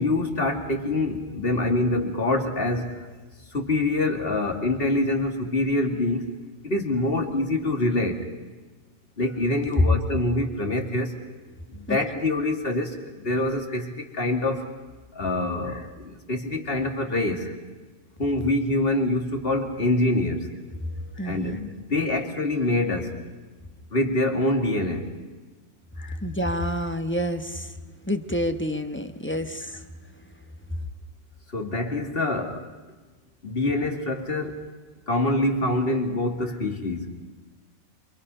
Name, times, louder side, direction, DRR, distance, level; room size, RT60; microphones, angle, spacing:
voice 1, 0.0-3.1 3.5-6.3 6.6-8.3 9.2-11.2 11.7-14.7 15.1-17.5 18.2-20.5 21.2-23.2 23.9-25.1 26.0-26.2 31.5-32.7 33.4-34.6 35.1-37.1, left 2 dB, 45° left, 3 dB, 2.6 m, -25 dB
voice 2, 21.2-21.6 26.2-27.8 28.0-29.8, equal, 10° left, 7 dB, 1.0 m, -28 dB
27.5 x 24.5 x 5.6 m, 1.3 s
omnidirectional pair, 1.4 m